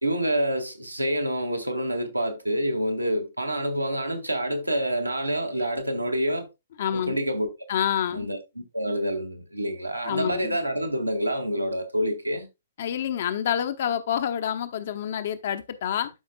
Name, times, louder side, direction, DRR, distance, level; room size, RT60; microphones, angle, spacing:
voice 1, 0.0-6.5 6.9-7.5 8.1-12.5, equal, 85° right, 1.7 m, -27 dB
voice 2, 6.8-7.2 7.7-8.3 10.0-10.6 12.8-16.1, left 9 dB, 50° left, 0.9 m, -27 dB
12.0 x 5.2 x 2.3 m
figure-of-eight pair, 120°, 0 cm